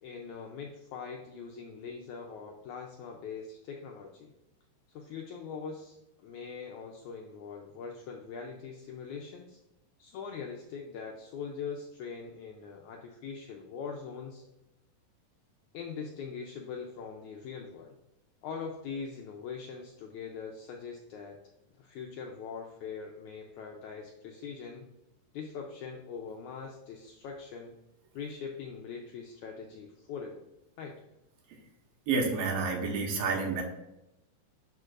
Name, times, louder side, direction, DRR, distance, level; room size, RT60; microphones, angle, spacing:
voice 1, 0.0-4.3 4.9-9.6 10.0-14.5 15.7-17.9 18.4-21.4 21.8-24.9 25.3-27.7 28.1-30.4 30.8-31.0, left 6 dB, 80° left, 1 dB, 1.7 m, -42 dB
voice 2, 32.1-33.6, right 4 dB, 85° right, 1 dB, 2.8 m, -29 dB
11.0 x 4.5 x 2.5 m, 0.93 s
omnidirectional pair, 4.1 m